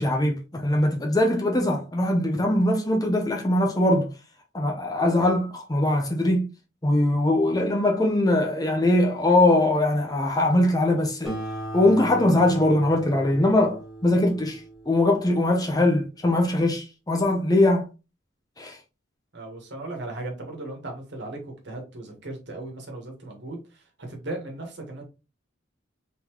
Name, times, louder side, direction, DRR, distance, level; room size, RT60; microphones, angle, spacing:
voice 1, 0.0-4.1 4.5-6.5 6.8-11.3 11.7-17.9 18.6-18.8, left 1 dB, 20° left, 0.7 m, -21 dB
Acoustic guitar, 11.2-16.1, right 1 dB, 5° right, 1.5 m, -38 dB
voice 2, 19.3-25.0, right 2 dB, 60° right, 1.5 m, -37 dB
3.9 x 3.8 x 3.0 m
head